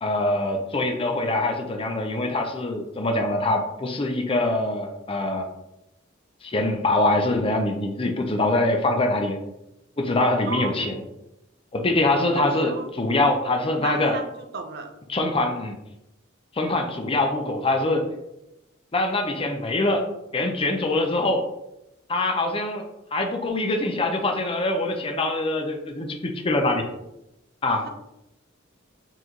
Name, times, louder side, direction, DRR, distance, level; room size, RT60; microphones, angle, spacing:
voice 1, 0.0-5.5 6.4-9.4 10.0-11.0 11.7-14.2 15.1-15.8 16.5-18.1 18.9-20.1 20.3-21.4 22.1-26.9 27.6-27.9, left 2 dB, 25° left, 4 dB, 0.5 m, -24 dB
voice 2, 12.3-12.9 13.8-14.9 27.8-27.9, right 4 dB, 50° right, 5 dB, 0.5 m, -33 dB
4.3 x 3.0 x 3.9 m, 0.88 s
head